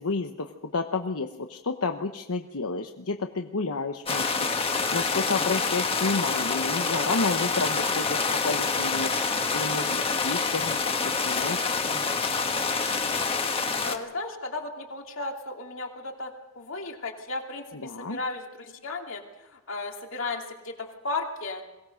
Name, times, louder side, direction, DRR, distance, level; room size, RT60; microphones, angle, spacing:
voice 1, 0.0-10.8 11.0-12.0 17.8-18.2, left 3 dB, 80° left, 5 dB, 1.0 m, -31 dB
sound 1, 4.1-14.0, left 4 dB, 25° left, 1.4 m, -27 dB
voice 2, 13.8-21.6, left 3 dB, 60° left, 2 dB, 2.6 m, -35 dB
22.5 x 18.0 x 6.5 m, 1.1 s
head